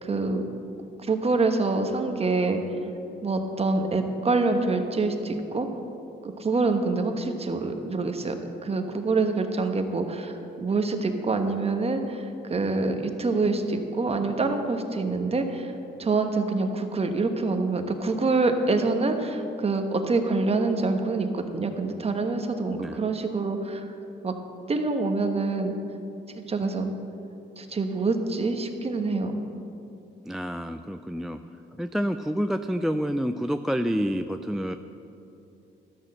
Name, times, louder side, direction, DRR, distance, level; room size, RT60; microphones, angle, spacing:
voice 1, 0.0-0.4 1.0-2.6 3.2-5.7 6.2-8.3 8.6-15.7 16.0-23.9 24.2-24.3 24.7-25.7 26.5-26.9 27.6-29.4, right 3 dB, 30° right, 6 dB, 1.1 m, -26 dB
voice 2, 30.3-31.4 31.8-34.8, equal, ahead, 7 dB, 0.3 m, -28 dB
12.5 x 6.4 x 7.5 m, 2.8 s
cardioid pair, 90°, 20 cm